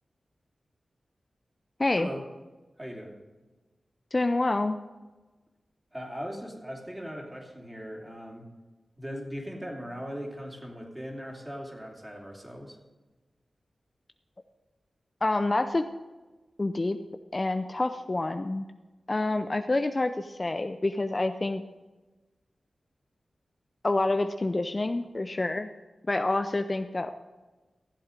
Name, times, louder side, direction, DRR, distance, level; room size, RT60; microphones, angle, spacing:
voice 1, 2.8-3.2 5.9-8.5 9.0-12.8, equal, 15° right, 0 dB, 2.9 m, -39 dB
voice 2, 4.1-4.8 15.2-15.8 16.6-17.0 17.3-18.7 19.1-21.6 23.8-25.7 26.1-27.1, left 2 dB, 35° left, 8 dB, 0.5 m, -27 dB
14.5 x 7.9 x 5.2 m, 1.2 s
cardioid pair, 60°, 0 cm